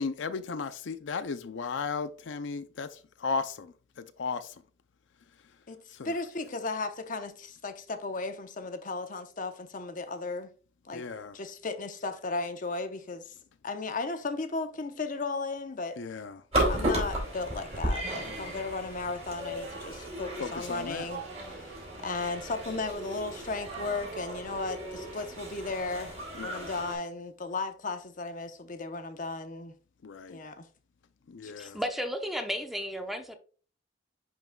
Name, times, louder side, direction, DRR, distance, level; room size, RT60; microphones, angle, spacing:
voice 1, 0.0-2.9 3.2-3.7 4.2-4.5 6.0-6.1 10.9-11.3 16.0-16.4 18.3-18.4 20.4-21.0 26.4-26.7 30.0-30.4 31.3-31.8, left 5 dB, 75° left, 0.5 m, -35 dB
voice 2, 5.7-10.5 10.8-11.0 11.3-13.3 13.6-16.0 16.7-29.7 30.3-30.7 31.4-31.7, left 3 dB, 45° left, 0.8 m, -35 dB
sound 1, 16.5-26.9, right 1 dB, 35° right, 3.5 m, -35 dB
voice 3, 31.6-33.3, equal, ahead, 0.7 m, -33 dB
10.5 x 3.9 x 2.2 m
head